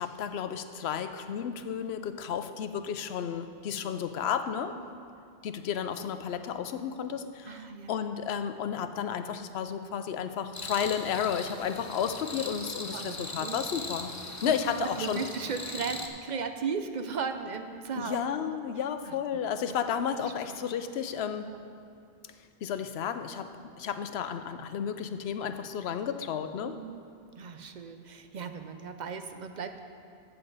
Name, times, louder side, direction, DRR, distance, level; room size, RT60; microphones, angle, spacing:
voice 1, 0.0-4.8 5.4-14.2 14.4-15.2 17.9-21.5 22.2-22.3 22.6-26.8, left 8 dB, 85° left, 9 dB, 0.9 m, -32 dB
voice 2, 7.4-8.0 12.9-13.9 14.5-18.6 19.1-19.4 20.5-20.6 21.4-21.6 26.6-27.1 27.4-29.8, right 5 dB, 55° right, 7 dB, 0.6 m, -37 dB
sound 1, 10.5-16.1, left 2 dB, 20° left, 0.6 m, -40 dB
13.0 x 7.9 x 3.9 m, 2.3 s
omnidirectional pair, 1.0 m